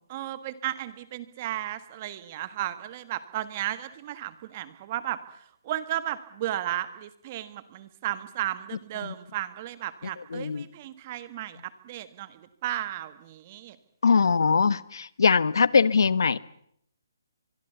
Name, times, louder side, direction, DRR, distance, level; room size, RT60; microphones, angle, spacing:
voice 1, 0.1-5.2 5.6-13.8, right 13 dB, 25° right, 1.5 m, -34 dB
voice 2, 10.3-10.6 14.0-16.4, left 5 dB, 75° left, 1.1 m, -22 dB
24.0 x 23.5 x 7.0 m
hypercardioid pair, 170°, 2 cm